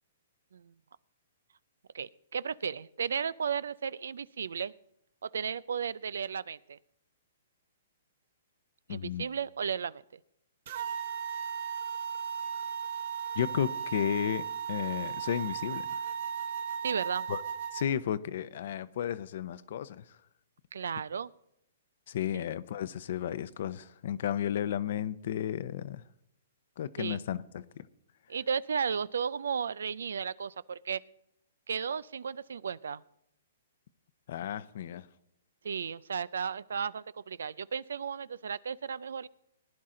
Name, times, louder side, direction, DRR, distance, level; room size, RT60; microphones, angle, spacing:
voice 1, 1.9-4.7 5.2-6.8 8.9-10.0 16.8-17.3 20.7-21.3 22.3-22.4 27.0-27.2 28.3-31.0 31.7-33.0 35.6-39.3, right 6 dB, 85° right, 21 dB, 0.4 m, -34 dB
voice 2, 8.9-9.2 13.4-14.4 14.7-15.8 17.3-17.4 17.7-20.0 22.1-26.0 26.8-27.8 34.3-35.0, left 10 dB, 60° left, 16 dB, 0.6 m, -33 dB
sound 1, 10.7-17.8, right 7 dB, 55° right, 1.2 m, -36 dB
19.0 x 10.5 x 3.8 m, 0.77 s
hypercardioid pair, 150°, 0 cm